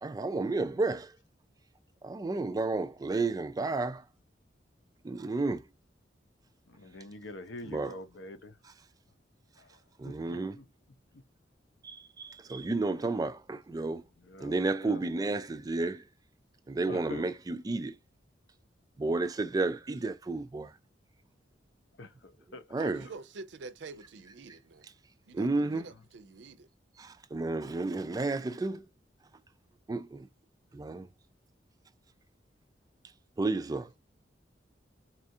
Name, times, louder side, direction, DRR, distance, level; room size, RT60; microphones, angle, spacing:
voice 1, 0.0-1.2 2.0-4.0 5.0-5.7 7.6-8.0 8.6-8.7 10.0-10.6 11.8-14.0 14.4-16.0 16.7-18.0 19.0-20.7 22.7-23.0 25.3-25.9 27.0-28.9 29.9-30.3 30.7-31.1 33.4-33.9, right 3 dB, 20° right, 0.3 m, -32 dB
voice 2, 6.7-8.5 9.6-9.7 10.0-10.1 10.5-10.6 14.3-15.0 16.8-17.3 22.0-22.7 25.4-25.8, left 2 dB, 90° left, 0.7 m, -45 dB
voice 3, 22.8-24.9 25.3-26.7, right 3 dB, 75° right, 0.5 m, -46 dB
4.2 x 2.4 x 2.6 m
head